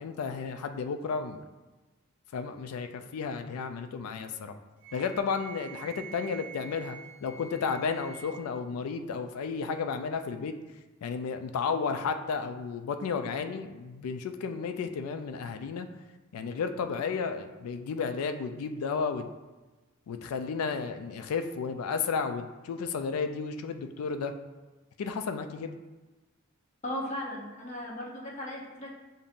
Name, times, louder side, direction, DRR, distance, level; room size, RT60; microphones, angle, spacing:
voice 1, 0.0-1.4 2.3-4.5 4.9-10.6 11.0-15.9 16.3-19.3 20.1-24.3 25.0-25.8, left 5 dB, 80° left, 8 dB, 0.3 m, -33 dB
Wind instrument woodwind instrument, 4.8-8.5, right 6 dB, 80° right, 0.6 m, -47 dB
voice 2, 26.8-28.9, left 1 dB, 30° left, -3 dB, 0.7 m, -37 dB
6.8 x 2.6 x 2.5 m, 1.2 s
head